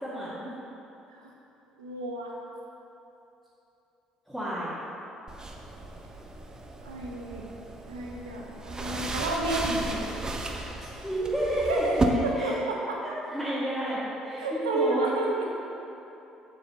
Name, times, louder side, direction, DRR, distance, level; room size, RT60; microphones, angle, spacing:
voice 1, 0.0-0.5 4.3-4.8 9.8-10.0 10.8-11.9 12.4-12.5 13.0-14.0 14.2-15.0, right 1 dB, ahead, -10 dB, 1.6 m, -31 dB
voice 2, 1.8-2.4 6.8-7.4 7.9-9.8 11.6-13.0 14.4-15.6, right 2 dB, 80° right, -1 dB, 0.7 m, -31 dB
sound 1, 5.3-12.0, right 3 dB, 25° right, 0.7 m, -35 dB
7.4 x 6.7 x 3.0 m, 2.9 s
figure-of-eight pair, 55°, 3 cm